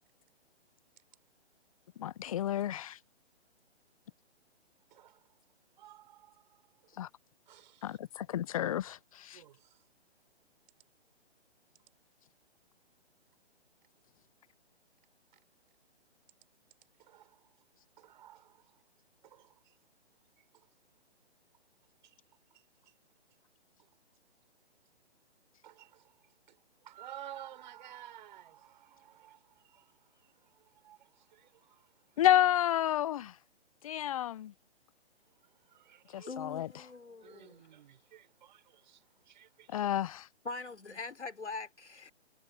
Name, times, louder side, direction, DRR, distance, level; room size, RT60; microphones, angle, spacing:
voice 1, 2.0-3.0 7.0-7.1 7.8-9.4 32.2-33.3 33.8-34.5 36.1-36.7 39.7-40.2, left 12 dB, 30° left, 0.7 m, -30 dB
voice 2, 4.9-5.4 5.8-7.0 7.5-8.0 9.3-9.9 17.0-17.6 18.0-18.8 19.2-19.8 20.4-20.7 22.0-22.2 22.5-22.9 23.8-23.9 25.6-32.3 35.2-36.3 37.2-39.9, right 12 dB, 45° right, 6.1 m, -54 dB
voice 3, 36.3-37.7 40.4-42.1, left 3 dB, 85° left, 3.6 m, -42 dB
figure-of-eight pair, 140°, 34 cm